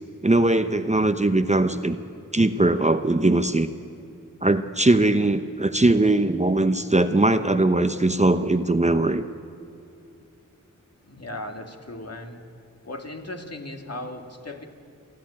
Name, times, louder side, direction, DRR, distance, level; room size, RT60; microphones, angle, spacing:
voice 1, 0.2-2.0 2.3-3.7 4.4-9.2, right 2 dB, 20° right, 9 dB, 0.9 m, -20 dB
voice 2, 11.0-12.4 12.8-14.6, left 1 dB, 50° left, 4 dB, 2.3 m, -37 dB
28.0 x 11.5 x 8.8 m, 2.7 s
cardioid pair, 45°, 32 cm